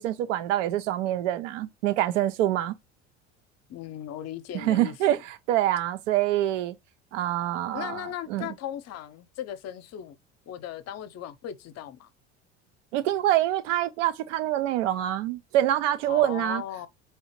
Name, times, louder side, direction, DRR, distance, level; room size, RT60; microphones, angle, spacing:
voice 1, 0.0-2.7 4.5-6.7 7.1-8.5 12.9-16.6, right 13 dB, 80° right, 0.6 m, -26 dB
voice 2, 3.7-4.9 7.7-10.2 10.5-12.1 16.1-16.9, left 11 dB, 45° left, 0.6 m, -37 dB
3.4 x 2.8 x 2.9 m
hypercardioid pair, 80°, 36 cm